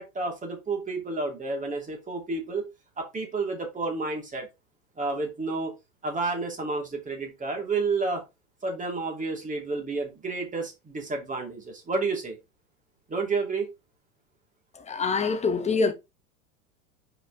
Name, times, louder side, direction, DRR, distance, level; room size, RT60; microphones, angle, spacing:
voice 1, 0.0-2.7 3.0-4.5 5.0-5.7 6.0-8.2 8.6-12.4 13.1-13.7, right 3 dB, 20° right, 2.4 m, -30 dB
voice 2, 14.8-15.9, left 4 dB, 15° left, 1.2 m, -25 dB
5.0 x 4.9 x 3.8 m
hypercardioid pair, 105°, 42 cm